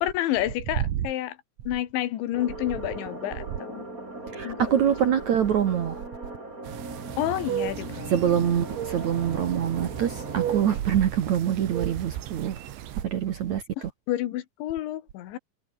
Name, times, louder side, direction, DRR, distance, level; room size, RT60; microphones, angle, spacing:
voice 1, 0.0-1.4 1.7-3.9 4.4-5.1 7.2-8.7 13.8-15.4, left 13 dB, 85° left, 3.9 m, -30 dB
sound 1, 2.3-10.8, right 2 dB, 20° right, 6.9 m, -39 dB
voice 2, 4.3-6.0 8.1-12.5 13.0-13.6, right 9 dB, 60° right, 2.0 m, -25 dB
sound 2, 6.6-13.0, right 11 dB, 85° right, 4.4 m, -35 dB
omnidirectional pair, 5.1 m